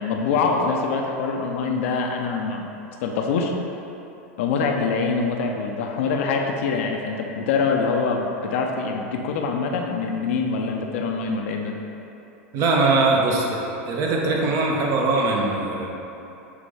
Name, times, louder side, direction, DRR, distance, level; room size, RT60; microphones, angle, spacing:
voice 1, 0.0-2.7 3.0-3.5 4.4-11.8, left 4 dB, 70° left, 2 dB, 0.4 m, -24 dB
voice 2, 12.5-13.6 13.8-15.9, right 3 dB, 50° right, -1 dB, 0.8 m, -21 dB
6.2 x 2.6 x 3.2 m, 2.9 s
hypercardioid pair, 95°, 7 cm